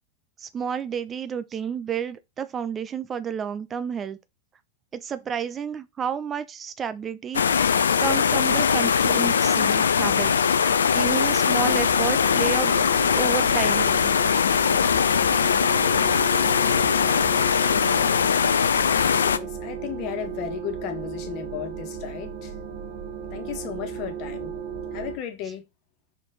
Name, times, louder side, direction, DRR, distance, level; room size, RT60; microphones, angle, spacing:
voice 1, 0.4-4.2 4.9-7.6 8.0-10.3 10.9-12.8 13.1-14.1, right 7 dB, 25° right, 0.6 m, -30 dB
sound 1, 7.3-19.4, left 7 dB, 70° left, 0.5 m, -21 dB
sound 2, 10.5-25.2, right 7 dB, 55° right, 1.6 m, -36 dB
voice 2, 19.2-22.5 23.3-25.6, left 10 dB, 40° left, 1.5 m, -35 dB
6.0 x 4.3 x 3.8 m
figure-of-eight pair, 90°, 0 cm